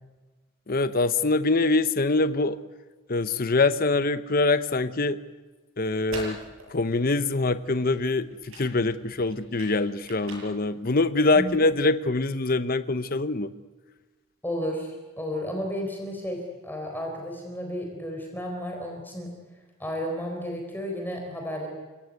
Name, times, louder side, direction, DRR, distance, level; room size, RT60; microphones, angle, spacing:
voice 1, 0.7-2.6 3.1-5.2 5.8-6.4 6.7-13.5, left 3 dB, 45° left, 12 dB, 0.8 m, -24 dB
sound 1, 5.8-11.9, right 1 dB, 70° right, 7.6 m, -44 dB
voice 2, 14.4-19.3 19.8-21.7, equal, 10° left, 1 dB, 4.1 m, -33 dB
29.0 x 17.5 x 9.5 m, 1.3 s
head